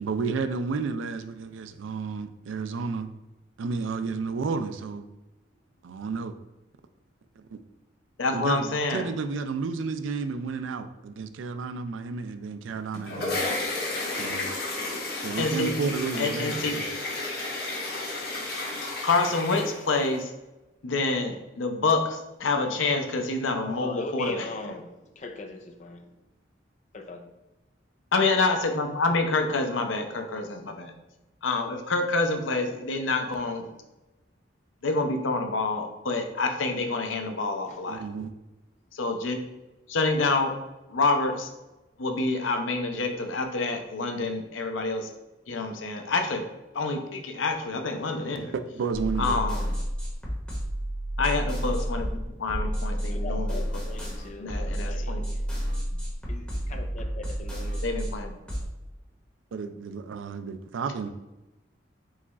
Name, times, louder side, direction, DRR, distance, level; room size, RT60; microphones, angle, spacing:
voice 1, 0.0-3.1 3.6-5.0 5.8-6.3 7.4-7.6 8.3-13.4 14.2-14.5 15.2-16.9 37.9-38.3 48.7-49.4 59.5-61.1, right 4 dB, 85° right, 9 dB, 0.4 m, -32 dB
voice 2, 8.2-9.1 15.4-15.7 16.2-16.8 19.0-20.3 20.8-24.5 28.1-30.9 31.4-33.7 34.8-38.0 38.9-39.4 39.9-40.5 40.9-41.5 42.0-45.1 45.5-46.4 46.7-48.5 49.2-49.7 51.2-52.1 52.4-53.6 54.4-55.2 57.8-58.3, left 3 dB, 80° left, 5 dB, 0.6 m, -27 dB
sound 1, 12.7-20.2, left 2 dB, 55° left, 1.3 m, -32 dB
voice 3, 23.6-26.1 26.9-27.3 37.7-37.8 49.5-49.6 53.1-55.5 56.3-57.8, left 3 dB, 40° left, 5 dB, 0.5 m, -40 dB
sound 2, 48.9-58.6, equal, 5° left, 1.1 m, -30 dB
4.7 x 2.3 x 4.1 m, 1.0 s
head